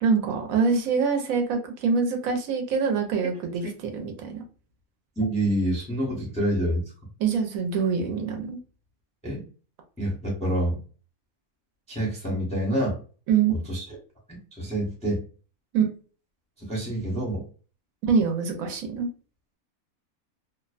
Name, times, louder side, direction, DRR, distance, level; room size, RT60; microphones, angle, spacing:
voice 1, 0.0-3.6 3.9-4.4 7.2-8.6 13.3-13.5 15.7-15.9 18.1-19.1, right 5 dB, 75° right, 4 dB, 1.0 m, -24 dB
voice 2, 5.2-6.9 9.2-9.5 10.0-10.8 11.9-13.0 13.5-13.8 14.3-15.2 16.6-17.5, right 1 dB, 5° left, -3 dB, 0.5 m, -27 dB
2.5 x 2.1 x 2.4 m, 0.38 s
omnidirectional pair, 1.5 m